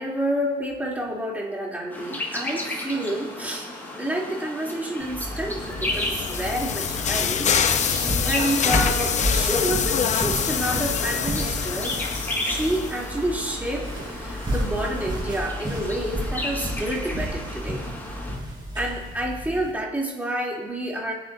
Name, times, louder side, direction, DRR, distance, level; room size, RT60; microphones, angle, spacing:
voice 1, 0.0-3.7 4.0-7.5 8.2-12.0 12.4-17.8 18.7-21.1, right 1 dB, 10° right, -3 dB, 3.3 m, -29 dB
sound 1, 1.9-18.4, left 1 dB, 10° left, 4.3 m, -34 dB
sound 2, 5.0-19.7, equal, 25° right, 4.0 m, -32 dB
sound 3, 5.6-13.1, left 7 dB, 45° left, 0.8 m, -26 dB
28.5 x 10.0 x 2.8 m, 1.2 s
cardioid pair, 110°, 17 cm